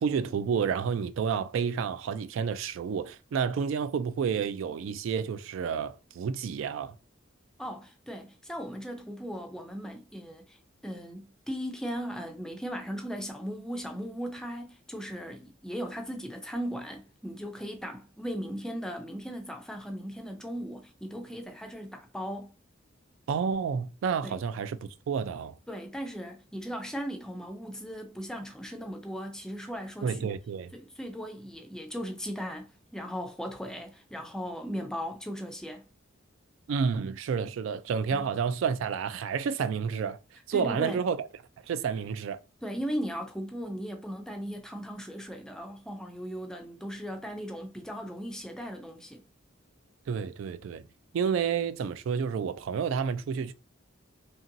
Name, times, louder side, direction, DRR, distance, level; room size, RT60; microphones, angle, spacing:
voice 1, 0.0-7.0 23.3-25.6 30.0-30.7 36.7-40.2 40.5-41.3 41.7-42.4 50.1-50.8 51.1-53.5, right 6 dB, 75° right, 0.3 m, -30 dB
voice 2, 7.6-10.6 10.8-22.5 24.2-24.4 25.7-30.4 30.7-35.8 40.5-41.0 42.6-49.2, equal, 5° left, 0.4 m, -37 dB
2.9 x 2.6 x 2.6 m
head